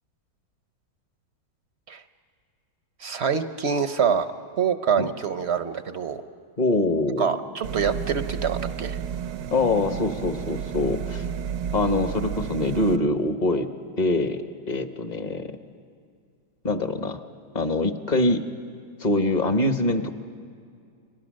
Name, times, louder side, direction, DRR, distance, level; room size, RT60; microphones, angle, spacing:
voice 1, 3.0-4.3 4.6-6.2 7.2-9.0, right 7 dB, 55° right, 10 dB, 0.7 m, -25 dB
voice 2, 6.6-7.3 9.5-11.3 11.7-13.7 14.0-15.5 16.6-17.2 17.5-18.4 19.0-20.1, left 2 dB, 35° left, 8 dB, 0.8 m, -24 dB
sound 1, 7.6-13.0, right 8 dB, 85° right, 1.5 m, -32 dB
30.0 x 24.0 x 6.4 m, 2.3 s
omnidirectional pair, 1.9 m